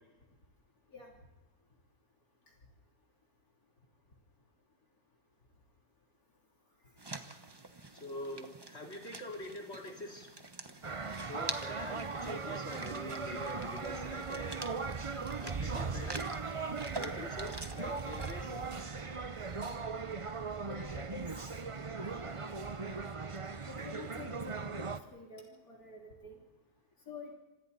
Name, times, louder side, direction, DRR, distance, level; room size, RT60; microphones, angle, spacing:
sound 1, 7.0-18.7, right 2 dB, 20° right, 1.0 m, -47 dB
voice 1, 7.9-10.3 11.3-14.6 15.4-16.2 17.0-18.7, left 1 dB, 40° left, 1 dB, 3.7 m, -45 dB
sound 2, 10.8-25.0, right 4 dB, 35° right, 0.5 m, -39 dB
voice 2, 20.7-21.3 22.0-22.5 22.9-23.0 23.7-26.4 27.1-27.3, left 3 dB, 65° left, -1 dB, 3.8 m, -49 dB
27.5 x 26.0 x 4.2 m, 1.1 s
omnidirectional pair, 1.7 m